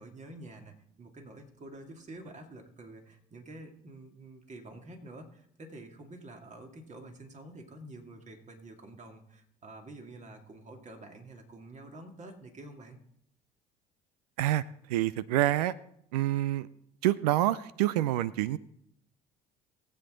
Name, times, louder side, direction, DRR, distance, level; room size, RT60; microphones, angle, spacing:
voice 1, 0.0-13.0, right 2 dB, 35° right, 3 dB, 2.5 m, -48 dB
voice 2, 14.9-15.7 16.1-16.7 17.0-18.6, right 14 dB, 85° right, 18 dB, 0.4 m, -27 dB
20.0 x 8.0 x 3.8 m, 0.72 s
hypercardioid pair, 65°, 20 cm